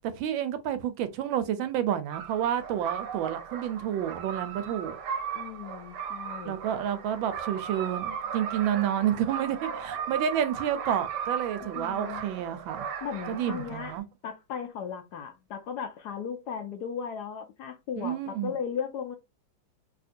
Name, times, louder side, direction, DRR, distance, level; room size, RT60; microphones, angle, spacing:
voice 1, 0.1-5.0 6.5-12.9 13.3-14.0 18.0-18.5, right 10 dB, 90° right, 1.4 m, -30 dB
sound 1, 2.1-14.0, right 7 dB, 70° right, 1.2 m, -37 dB
voice 2, 5.3-6.6 11.6-12.2 13.0-13.9 14.2-19.2, left 7 dB, 70° left, 1.0 m, -36 dB
3.6 x 2.7 x 2.5 m
omnidirectional pair, 2.1 m